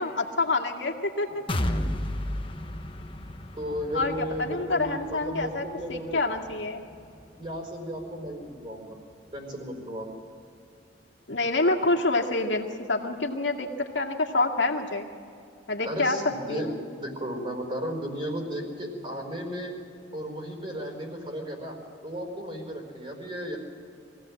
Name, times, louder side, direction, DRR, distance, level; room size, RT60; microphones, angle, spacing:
voice 1, 0.0-1.4 3.9-6.8 11.3-15.1 15.7-16.2 16.5-16.8, left 2 dB, 75° left, 2 dB, 2.1 m, -27 dB
sound 1, 1.5-9.3 9.7-9.8 10.2-10.3, left 1 dB, 30° left, 1.1 m, -35 dB
voice 2, 3.5-6.2 7.4-9.0 9.3-10.1 15.8-16.7 17.0-19.7 20.1-21.8 22.0-23.6, equal, 35° right, 1 dB, 4.8 m, -34 dB
23.0 x 16.5 x 7.7 m, 2.5 s
head